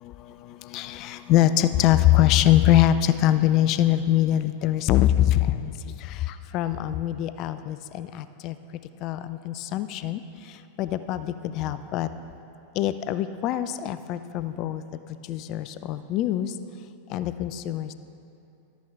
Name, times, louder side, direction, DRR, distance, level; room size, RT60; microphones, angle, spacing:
voice 1, 0.7-6.2 6.5-8.6 9.0-10.2 10.8-12.1 12.8-14.8 15.3-16.5 17.1-17.9, left 12 dB, 40° left, 12 dB, 0.3 m, -23 dB
12.0 x 8.3 x 3.4 m, 2.7 s
figure-of-eight pair, 90°, 0 cm